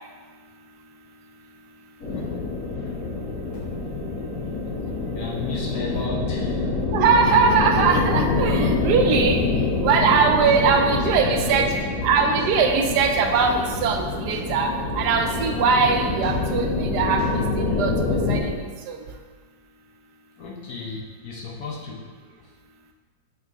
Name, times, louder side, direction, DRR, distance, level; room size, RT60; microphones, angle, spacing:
sound 1, 2.0-18.4, left 3 dB, 45° left, 2.3 m, -26 dB
voice 1, 2.7-3.1 5.1-6.7 10.5-11.7 20.4-22.0, left 3 dB, 60° left, -2 dB, 1.2 m, -34 dB
voice 2, 6.9-9.4 9.8-11.7 12.0-17.9 18.3-18.5 18.9-19.0, right 5 dB, 75° right, 4 dB, 1.1 m, -21 dB
Drum kit, 10.0-17.7, right 1 dB, 25° left, 1.5 m, -39 dB
5.7 x 5.7 x 2.9 m, 1.5 s
omnidirectional pair, 1.9 m